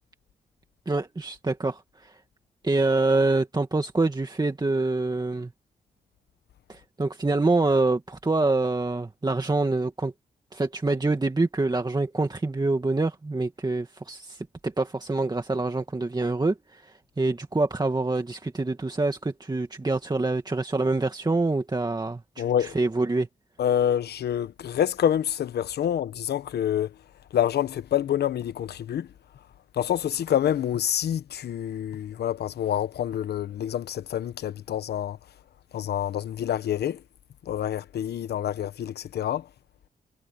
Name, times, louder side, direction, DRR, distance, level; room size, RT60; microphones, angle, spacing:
voice 1, 0.9-2.2 2.6-5.5 6.7-10.1 10.5-23.3, right 2 dB, 25° right, 2.1 m, -26 dB
voice 2, 22.4-22.7 23.6-26.9 27.3-29.1 29.8-35.2 35.7-37.0 37.5-39.4, left 10 dB, 80° left, 1.0 m, -27 dB
cardioid pair, 60°, 17 cm